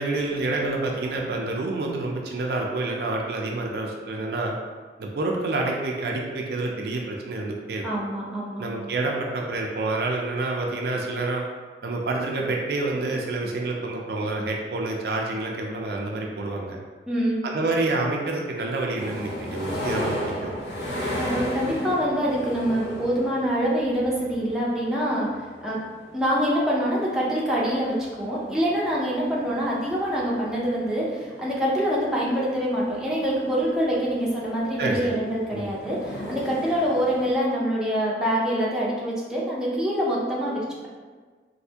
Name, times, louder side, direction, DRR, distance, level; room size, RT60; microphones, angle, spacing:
voice 1, 0.0-4.6 5.0-7.8 8.6-11.4 11.8-16.8 17.4-20.6 34.8-35.1 35.5-35.7, right 2 dB, 60° right, 0 dB, 0.4 m, -28 dB
voice 2, 7.8-8.6 17.1-17.4 21.2-25.3 25.6-25.8 26.1-40.9, equal, 5° right, -6 dB, 0.5 m, -25 dB
sound 1, 19.0-37.3, equal, 70° left, 0.7 m, -36 dB
3.2 x 2.6 x 2.7 m, 1.5 s
head